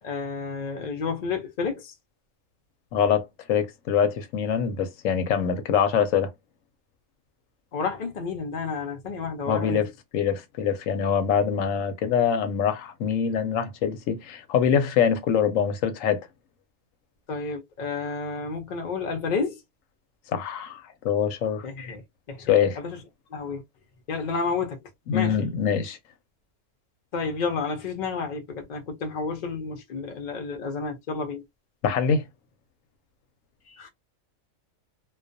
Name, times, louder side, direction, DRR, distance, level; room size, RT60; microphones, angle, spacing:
voice 1, 0.0-1.9 7.7-9.8 17.3-19.6 21.6-22.0 22.3-23.0 23.3-23.6 24.1-25.5 27.1-31.4 33.7-33.9, left 4 dB, 55° left, 0.5 m, -31 dB
voice 2, 2.9-6.3 9.5-9.9 10.1-16.2 20.3-21.7 22.5-22.8 25.1-26.0 31.8-32.2, left 7 dB, 75° left, 0.9 m, -24 dB
2.2 x 2.2 x 2.5 m
omnidirectional pair, 1.4 m